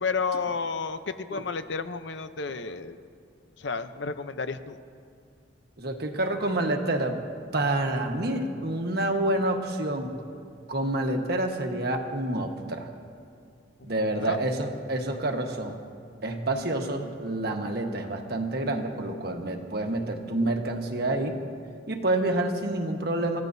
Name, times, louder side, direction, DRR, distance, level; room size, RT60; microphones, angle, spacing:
voice 1, 0.0-3.0 3.6-4.8 13.8-14.4, left 4 dB, 70° left, 10 dB, 0.7 m, -32 dB
voice 2, 5.8-7.2 7.5-10.2 10.7-12.9 13.8-15.8 16.2-21.3 21.9-23.4, right 1 dB, 55° right, 3 dB, 1.3 m, -28 dB
29.5 x 15.0 x 2.7 m, 2.4 s
head